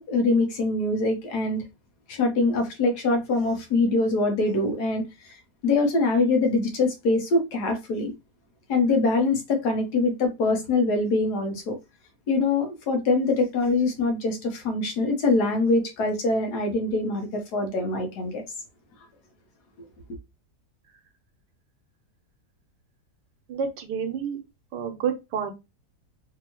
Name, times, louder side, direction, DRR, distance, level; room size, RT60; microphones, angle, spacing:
voice 1, 0.0-1.6 2.1-5.4 5.6-8.1 8.7-11.8 12.3-18.4, left 3 dB, 75° left, 1.4 m, -24 dB
voice 2, 23.5-24.4 24.7-25.5, right 7 dB, 90° right, 1.4 m, -29 dB
3.5 x 2.7 x 2.9 m
omnidirectional pair, 1.8 m